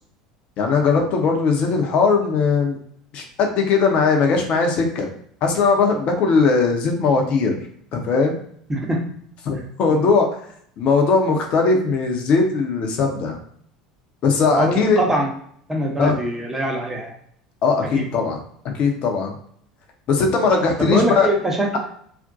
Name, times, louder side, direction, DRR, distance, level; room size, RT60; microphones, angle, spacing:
voice 1, 0.6-2.8 3.1-5.1 5.4-7.6 7.9-8.3 9.4-10.3 10.8-13.4 14.2-15.0 16.0-16.2 17.6-18.4 18.7-19.3 20.1-21.3, left 4 dB, 45° left, 2 dB, 0.6 m, -19 dB
voice 2, 14.5-15.3 15.7-17.1 17.9-18.1 20.8-21.8, right 1 dB, 10° right, 0 dB, 0.7 m, -23 dB
2.5 x 2.1 x 2.6 m, 0.63 s
figure-of-eight pair, 70°, 3 cm